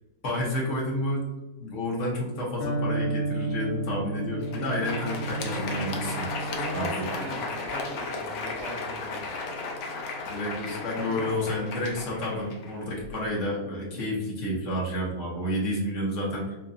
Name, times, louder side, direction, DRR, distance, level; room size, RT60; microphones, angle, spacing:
voice 1, 0.2-1.2 1.6-6.2 6.7-7.0 10.2-16.6, left 1 dB, 45° left, -3 dB, 1.1 m, -30 dB
Electric guitar, 2.6-10.4, right 3 dB, 70° left, 1.1 m, -34 dB
Crowd, 4.3-13.3, left 3 dB, 90° left, 0.7 m, -35 dB
voice 2, 5.3-5.9 6.4-9.3 11.2-11.6, right 1 dB, 70° right, -4 dB, 1.8 m, -40 dB
4.5 x 2.8 x 2.5 m, 1.0 s
omnidirectional pair, 2.2 m